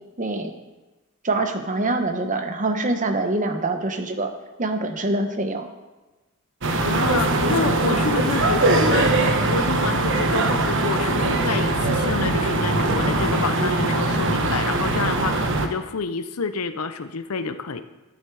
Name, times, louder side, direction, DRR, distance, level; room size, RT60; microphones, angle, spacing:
voice 1, 0.2-0.5 1.2-4.3 4.6-5.7, right 2 dB, 35° right, 6 dB, 1.1 m, -24 dB
sound 1, 6.6-15.7, right 2 dB, 60° right, 1.1 m, -21 dB
voice 2, 6.8-17.8, left 4 dB, 85° left, 10 dB, 0.8 m, -28 dB
12.5 x 10.5 x 4.8 m, 1.1 s
head